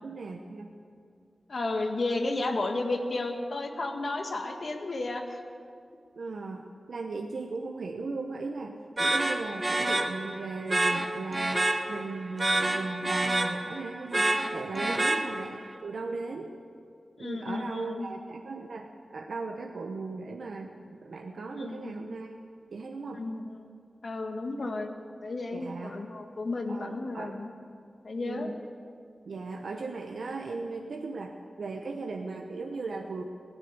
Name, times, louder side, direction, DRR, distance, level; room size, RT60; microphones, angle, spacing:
voice 1, 0.0-0.7 6.1-16.5 17.2-22.4 22.7-23.2 24.6-24.7 25.5-26.0 26.7-27.3 28.2-28.6 29.2-33.2, right 3 dB, 80° right, 2 dB, 0.9 m, -37 dB
voice 2, 1.5-5.4 14.8-15.1 17.2-18.1 21.6-21.9 23.1-23.6 24.0-27.5 28.0-28.5, left 2 dB, 65° left, 4 dB, 1.7 m, -33 dB
sound 1, 9.0-15.7, right 2 dB, 30° right, 1.4 m, -28 dB
17.0 x 10.0 x 8.2 m, 2.3 s
cardioid pair, 60°, 0 cm